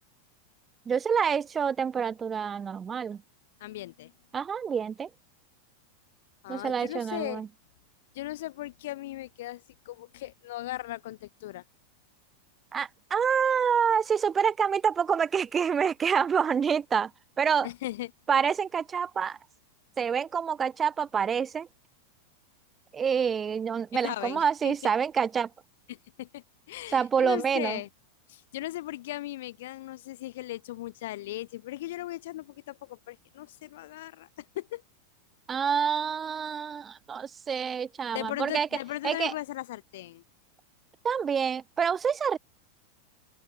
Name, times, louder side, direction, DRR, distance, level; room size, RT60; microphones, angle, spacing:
voice 1, 0.9-3.2 4.3-5.1 6.5-7.5 12.7-17.1 17.4-17.7 18.3-19.4 20.0-21.7 22.9-25.5 26.9-27.8 35.5-38.7 39.0-39.3 41.0-42.4, right 7 dB, 20° right, 1.0 m, -27 dB
voice 2, 3.6-4.1 6.4-7.4 8.1-11.6 17.6-18.1 24.0-24.8 25.9-27.9 28.3-34.8 38.1-40.2, left 16 dB, 55° left, 2.0 m, -38 dB
open air
figure-of-eight pair, 90°, 0 cm